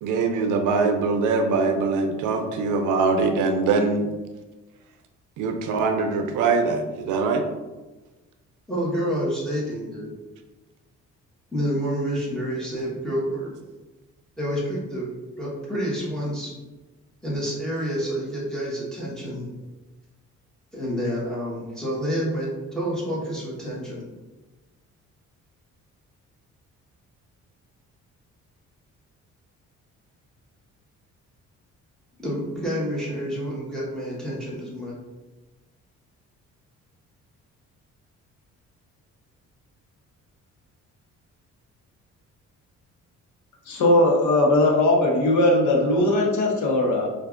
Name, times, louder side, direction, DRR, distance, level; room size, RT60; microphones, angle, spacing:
voice 1, 0.0-4.1 5.4-7.4, right 4 dB, 80° right, 6 dB, 0.5 m, -22 dB
voice 2, 8.7-10.1 11.5-13.5 14.4-15.1 15.4-16.5 17.2-19.5 20.7-24.0 32.2-35.0, equal, ahead, -7 dB, 1.1 m, -28 dB
voice 3, 43.7-47.1, left 1 dB, 70° left, -1 dB, 0.9 m, -19 dB
4.4 x 2.5 x 2.4 m, 1.2 s
cardioid pair, 90°, 30 cm